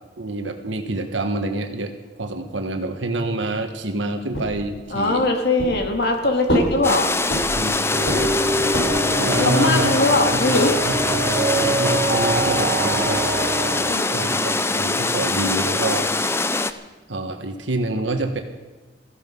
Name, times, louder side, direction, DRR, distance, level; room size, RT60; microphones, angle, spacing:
voice 1, 0.2-5.3 6.2-6.3 6.7-6.8 7.5-7.8 9.1-9.9 10.3-13.3 14.1-16.1 17.1-18.4, right 2 dB, 90° right, 5 dB, 1.5 m, -27 dB
sound 1, 4.3-5.2 5.6-6.2 6.5-7.7 8.1-9.1, equal, 85° left, 5.5 m, -26 dB
voice 2, 4.9-7.1 9.4-10.8 13.9-14.6, left 2 dB, 60° left, 3 dB, 2.5 m, -21 dB
sound 2, 6.8-16.7, left 3 dB, 15° left, 0.6 m, -23 dB
sound 3, 7.9-14.0, right 2 dB, 50° right, 1.9 m, -25 dB
17.0 x 14.5 x 5.4 m, 1.2 s
head